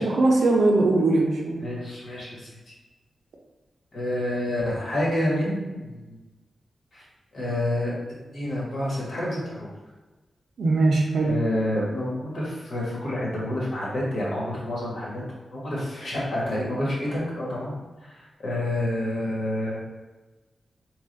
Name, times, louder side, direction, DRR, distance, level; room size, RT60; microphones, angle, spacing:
voice 1, 0.0-1.6 10.6-11.3, right 2 dB, 80° right, -1 dB, 0.6 m, -20 dB
voice 2, 1.6-2.5 3.9-6.2 6.9-7.0 7.3-7.9 8.3-9.7 11.2-15.2 15.5-17.7 18.1-19.8, left 1 dB, 60° left, -6 dB, 1.3 m, -28 dB
3.2 x 2.4 x 3.8 m, 1.2 s
wide cardioid pair, 170°, 0 cm